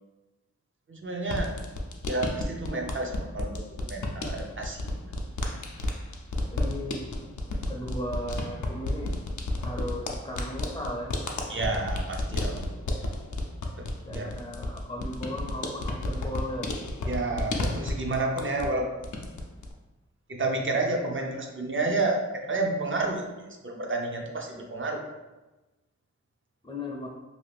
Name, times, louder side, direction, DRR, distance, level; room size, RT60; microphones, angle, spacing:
voice 1, 0.9-1.5 2.1-3.6 3.9-5.2 11.5-12.6 13.8-14.3 17.1-18.9 20.3-25.0, right 2 dB, 45° right, 1 dB, 0.6 m, -30 dB
sound 1, 1.2-18.8 19.0-19.7, left 2 dB, 80° left, 0.5 m, -32 dB
voice 2, 6.5-7.1 7.7-9.1 9.6-11.1 14.0-16.7 26.6-27.1, left 1 dB, 15° left, -2 dB, 0.5 m, -36 dB
2.6 x 2.4 x 3.3 m, 1.1 s
wide cardioid pair, 50°, 29 cm